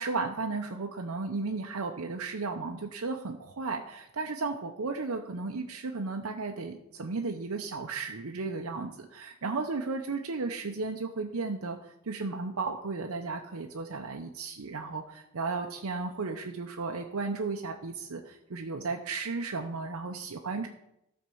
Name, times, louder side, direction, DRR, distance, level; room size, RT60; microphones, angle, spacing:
voice 1, 0.0-20.7, right 3 dB, 80° right, 3 dB, 0.7 m, -34 dB
12.5 x 4.3 x 7.0 m, 0.81 s
head